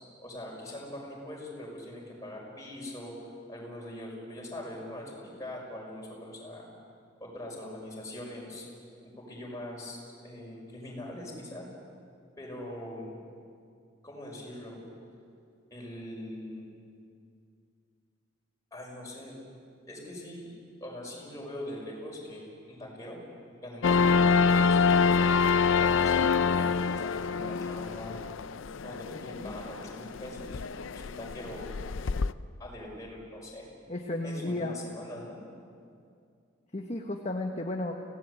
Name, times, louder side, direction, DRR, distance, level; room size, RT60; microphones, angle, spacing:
voice 1, 0.2-3.2 3.5-6.6 7.2-8.7 9.0-11.7 12.4-13.2 14.0-14.8 15.7-16.7 18.7-19.4 19.9-23.2 23.6-25.3 25.7-28.2 28.8-31.8 32.6-33.7 34.2-35.4, left 1 dB, 15° left, -2 dB, 6.0 m, -42 dB
sound 1, 23.8-32.3, left 5 dB, 75° left, 0.5 m, -26 dB
voice 2, 33.9-34.7 36.7-37.9, left 2 dB, 35° left, 2 dB, 1.3 m, -33 dB
25.0 x 17.5 x 8.3 m, 2.3 s
head